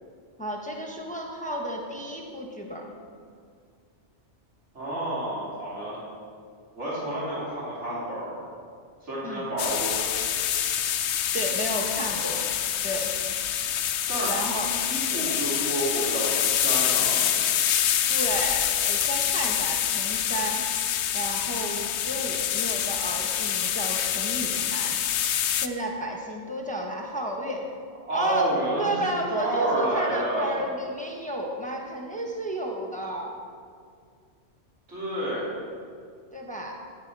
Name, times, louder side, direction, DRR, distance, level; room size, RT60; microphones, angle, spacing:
voice 1, 0.4-2.9 9.2-9.4 11.3-12.4 12.8-13.1 14.3-14.7 18.1-20.6 21.1-25.0 25.5-27.6 28.1-28.5 28.8-33.4 36.3-36.8, right 1 dB, 5° left, 0 dB, 1.2 m, -32 dB
voice 2, 4.7-6.0 6.7-8.4 9.0-10.1 14.1-14.3 14.6-17.3 28.1-30.6 34.9-35.5, right 1 dB, 70° right, -8 dB, 3.4 m, -29 dB
sound 1, 9.6-25.7, left 9 dB, 70° left, 0.9 m, -26 dB
13.0 x 10.0 x 4.8 m, 2.2 s
omnidirectional pair, 1.2 m